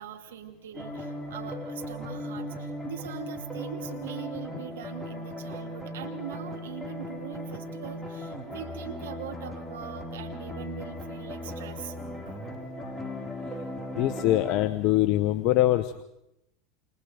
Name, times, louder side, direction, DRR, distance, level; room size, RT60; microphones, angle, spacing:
voice 1, 0.0-12.0 12.3-12.4, right 10 dB, 80° right, 5 dB, 2.4 m, -42 dB
sound 1, 0.7-14.7, left 1 dB, 5° left, 4.7 m, -37 dB
voice 2, 13.9-16.0, left 14 dB, 55° left, 10 dB, 0.9 m, -23 dB
28.5 x 27.5 x 3.5 m, 0.86 s
hypercardioid pair, 95°, 0 cm